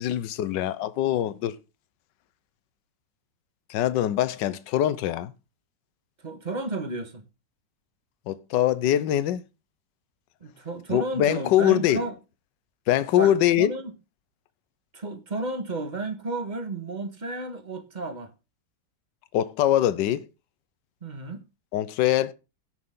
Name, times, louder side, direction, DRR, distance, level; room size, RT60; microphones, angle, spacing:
voice 1, 0.0-1.5 3.7-5.3 8.3-9.4 10.9-12.0 12.9-13.7 19.3-20.3 21.7-22.3, left 12 dB, 75° left, 1.4 m, -23 dB
voice 2, 6.2-7.2 10.4-12.1 13.1-13.9 14.9-18.3 21.0-21.4, right 2 dB, 25° right, 1.3 m, -32 dB
17.5 x 6.2 x 3.7 m
omnidirectional pair, 2.0 m